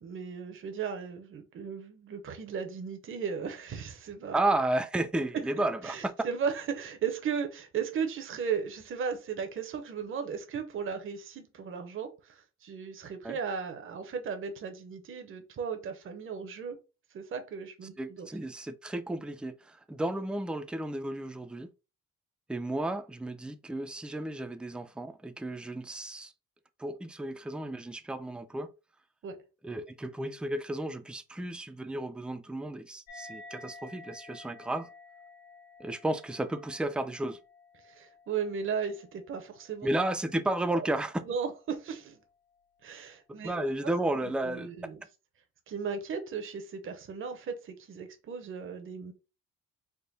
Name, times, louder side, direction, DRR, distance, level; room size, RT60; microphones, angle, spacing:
voice 1, 0.0-4.4 5.8-16.8 17.1-18.3 29.2-29.4 37.8-39.9 40.7-40.9 41.2-42.2 42.8-43.7 44.4-45.0 45.7-49.1, right 6 dB, 45° right, 0.7 m, -36 dB
voice 2, 4.3-6.1 13.2-13.4 18.0-21.7 22.5-26.3 26.8-28.7 29.6-34.9 35.8-37.4 39.8-41.2 43.4-44.7, right 1 dB, 5° right, 0.4 m, -33 dB
sound 1, 33.1-40.0, left 2 dB, 60° left, 1.7 m, -52 dB
3.6 x 2.1 x 3.9 m
cardioid pair, 90°, 30 cm